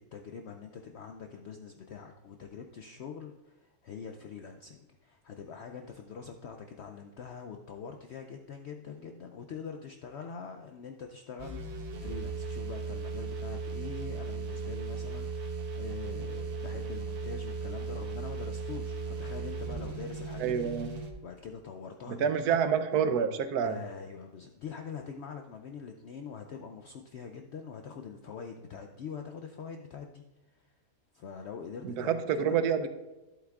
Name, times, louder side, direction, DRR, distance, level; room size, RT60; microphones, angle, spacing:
voice 1, 0.0-20.7 21.2-23.0 23.6-30.2 30.5-30.7 31.1-32.6, left 6 dB, 75° left, 5 dB, 0.6 m, -44 dB
sound 1, 11.4-21.1, right 4 dB, 65° right, 1.3 m, -37 dB
voice 2, 20.4-20.9 22.1-23.8 31.8-32.9, right 7 dB, 80° right, 10 dB, 1.2 m, -28 dB
11.0 x 8.0 x 2.4 m, 1.1 s
omnidirectional pair, 1.7 m